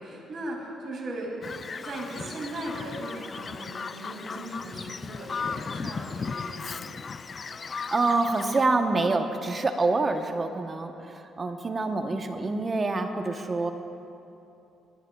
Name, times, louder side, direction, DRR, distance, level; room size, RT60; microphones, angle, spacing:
voice 1, 0.0-1.4 1.8-7.0, right 1 dB, 55° right, -2 dB, 2.7 m, -38 dB
Bird vocalization bird call bird song, 1.4-8.7, left 5 dB, 40° left, 0.3 m, -36 dB
voice 2, 7.9-13.7, right 3 dB, 35° right, 6 dB, 0.9 m, -26 dB
26.5 x 10.0 x 2.3 m, 2.8 s
cardioid pair, 90°, 0 cm